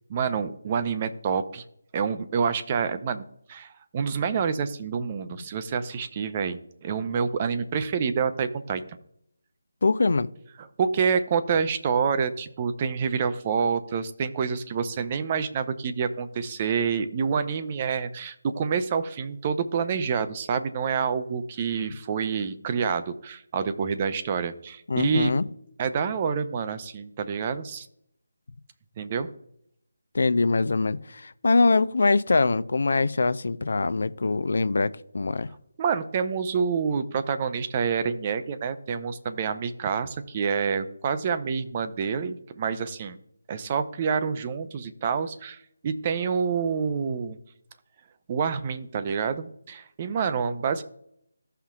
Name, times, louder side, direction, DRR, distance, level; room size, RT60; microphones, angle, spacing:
voice 1, 0.1-1.6 1.9-8.8 10.6-25.3 25.8-27.9 29.0-29.3 35.8-43.2 43.5-47.4 48.3-50.8, right 6 dB, 30° right, 0.6 m, -27 dB
voice 2, 9.8-10.3 24.9-25.5 30.1-35.5, left 3 dB, 60° left, 0.4 m, -23 dB
15.5 x 5.7 x 2.4 m
figure-of-eight pair, 155°, 0 cm